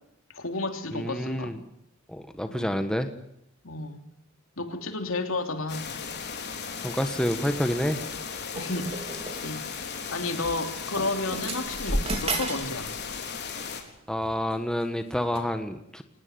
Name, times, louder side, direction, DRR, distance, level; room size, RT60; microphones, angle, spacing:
voice 1, 0.3-1.5 2.5-2.7 3.6-4.0 4.6-5.9 8.5-9.0 9.3-12.9, left 2 dB, 70° left, 6 dB, 3.1 m, -32 dB
voice 2, 0.9-1.6 2.1-3.1 6.8-8.0 14.1-16.0, equal, 5° left, 7 dB, 1.5 m, -28 dB
sound 1, 5.7-13.8, left 6 dB, 55° left, 4.0 m, -36 dB
sound 2, 8.5-9.5 10.4-10.5 10.9-12.7 13.0-13.3 14.2-14.5 15.3-15.4, right 2 dB, 30° right, 3.8 m, -32 dB
23.5 x 19.5 x 9.5 m, 0.78 s
head